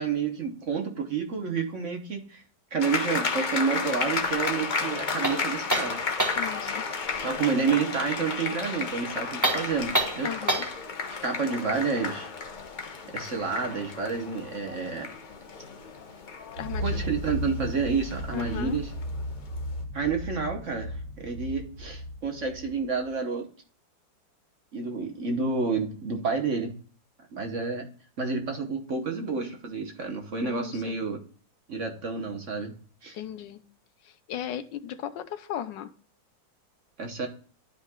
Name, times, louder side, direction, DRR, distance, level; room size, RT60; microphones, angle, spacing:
voice 1, 0.0-2.4 2.7-6.0 7.2-10.3 11.1-12.3 13.1-15.1 16.8-18.9 19.9-23.5 24.7-26.7 27.3-27.9 28.2-31.2 31.7-32.7 33.0-33.1 37.0-37.3, right 5 dB, 45° right, 1.2 m, -29 dB
sound 1, 2.8-19.4, left 5 dB, 60° left, 0.5 m, -33 dB
sound 2, 5.2-6.5 9.3-10.8, right 1 dB, 10° right, 1.6 m, -27 dB
voice 2, 6.3-6.8 10.2-10.7 16.6-17.0 18.3-18.8 30.4-31.0 33.1-33.6 34.3-35.9, left 10 dB, 75° left, 1.4 m, -36 dB
sound 3, 16.6-23.1, equal, 85° right, 1.7 m, -35 dB
12.0 x 5.2 x 2.2 m
omnidirectional pair, 2.1 m